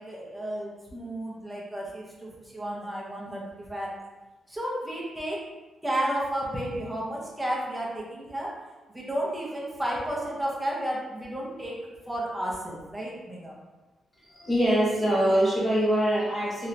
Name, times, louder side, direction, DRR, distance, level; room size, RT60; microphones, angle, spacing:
voice 1, 0.0-3.9 4.5-5.4 5.8-8.5 8.9-11.8 12.1-13.5, right 1 dB, 5° right, -5 dB, 0.6 m, -32 dB
voice 2, 14.3-16.7, right 1 dB, 15° left, -7 dB, 0.9 m, -24 dB
3.1 x 2.7 x 2.5 m, 1.2 s
wide cardioid pair, 175°, 0 cm